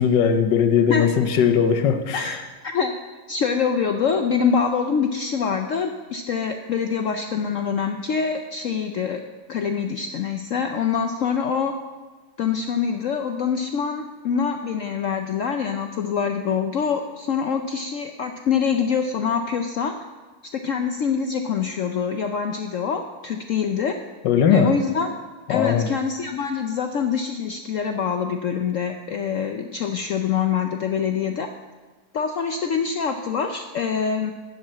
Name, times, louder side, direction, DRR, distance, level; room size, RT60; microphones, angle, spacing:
voice 1, 0.0-2.4 24.2-24.8 25.5-25.9, left 7 dB, 90° left, 8 dB, 1.5 m, -19 dB
voice 2, 3.3-9.2 9.5-11.7 12.4-19.9 20.5-23.9 24.5-25.1 25.5-31.5 32.1-34.3, left 6 dB, 65° left, 6 dB, 0.8 m, -25 dB
12.0 x 5.5 x 7.6 m, 1.3 s
omnidirectional pair, 1.9 m